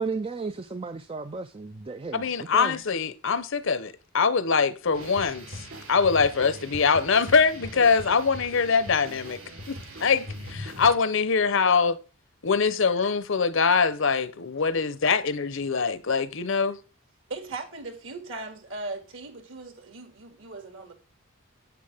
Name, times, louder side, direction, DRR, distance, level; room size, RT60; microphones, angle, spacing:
voice 1, 0.0-2.8, right 4 dB, 25° right, 0.4 m, -34 dB
voice 2, 2.1-9.4 9.7-12.0 12.4-16.8, left 5 dB, 60° left, 0.9 m, -23 dB
sound 1, 4.9-10.9, equal, 80° right, 5.1 m, -40 dB
voice 3, 17.3-20.9, right 3 dB, 65° right, 2.5 m, -38 dB
10.0 x 8.5 x 3.5 m
head